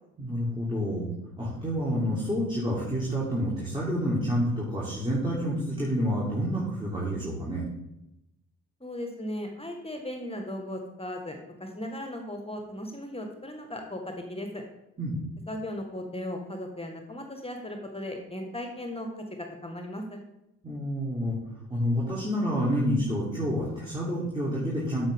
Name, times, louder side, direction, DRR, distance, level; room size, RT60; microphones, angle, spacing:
voice 1, 0.2-1.1 1.4-7.6 15.0-15.2 20.6-21.4 21.7-25.1, equal, 15° right, -7 dB, 3.2 m, -28 dB
voice 2, 8.8-14.6 15.5-20.2, left 1 dB, 15° left, 3 dB, 1.5 m, -37 dB
8.9 x 7.0 x 3.6 m, 0.87 s
hypercardioid pair, 45°, 35 cm